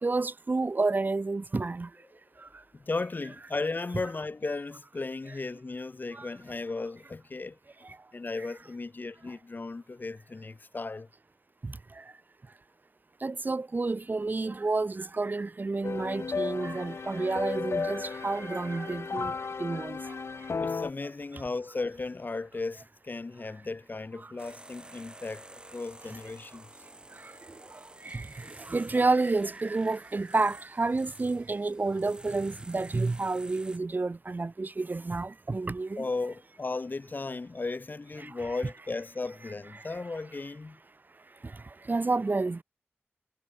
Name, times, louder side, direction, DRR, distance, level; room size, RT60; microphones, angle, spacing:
voice 1, 0.0-1.9 6.1-6.3 11.6-11.7 13.2-19.3 19.6-20.1 28.0-36.0 38.2-38.3 41.9-42.6, right 3 dB, 45° right, 1.5 m, -30 dB
voice 2, 2.7-7.6 8.1-11.1 20.6-26.7 36.0-40.8, left 3 dB, 45° left, 1.4 m, -36 dB
sound 1, 15.8-20.9, left 5 dB, 80° left, 1.2 m, -34 dB
sound 2, 24.4-33.8, right 1 dB, 20° right, 2.7 m, -51 dB
wide cardioid pair, 100°, 4 cm